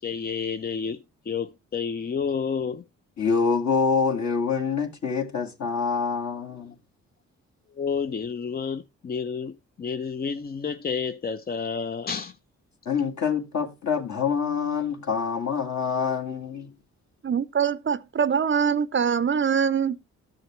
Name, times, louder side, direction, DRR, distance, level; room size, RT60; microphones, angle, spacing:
voice 1, 0.0-2.8 7.8-12.3, left 6 dB, 30° left, 0.5 m, -30 dB
voice 2, 3.2-6.7 12.9-16.7, left 5 dB, 50° left, 2.0 m, -26 dB
voice 3, 17.2-20.0, right 7 dB, 35° right, 0.5 m, -23 dB
13.0 x 6.4 x 3.0 m
supercardioid pair, 45°, 35 cm